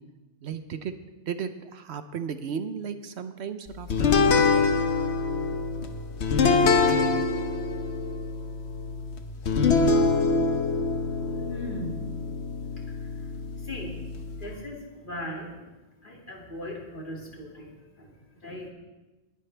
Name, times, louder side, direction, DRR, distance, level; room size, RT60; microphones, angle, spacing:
voice 1, 0.4-0.9 1.3-4.7, right 7 dB, 75° right, 10 dB, 1.0 m, -35 dB
sound 1, 3.9-14.5, left 4 dB, 80° left, 1.2 m, -25 dB
voice 2, 11.3-18.7, equal, 50° left, -2 dB, 2.7 m, -40 dB
20.0 x 10.0 x 3.4 m, 1.1 s
omnidirectional pair, 1.1 m